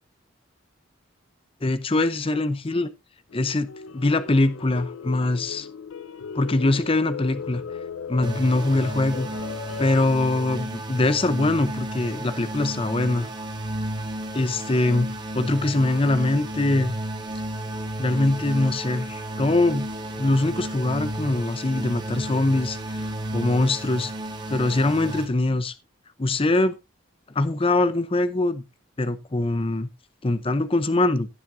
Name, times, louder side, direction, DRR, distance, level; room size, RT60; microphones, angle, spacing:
voice 1, 1.6-2.9 3.3-3.7 3.9-5.7 6.4-7.6 8.1-9.3 9.8-13.3 14.3-15.1 15.3-17.0 18.0-19.9 20.2-24.1 24.5-25.7 26.2-26.8 27.3-28.6 29.0-29.9 30.2-31.3, left 2 dB, 25° left, 0.7 m, -23 dB
sound 1, 3.3-10.0, left 6 dB, 85° left, 0.6 m, -37 dB
sound 2, 8.2-25.3, right 1 dB, 20° right, 1.8 m, -33 dB
16.5 x 7.7 x 2.7 m
head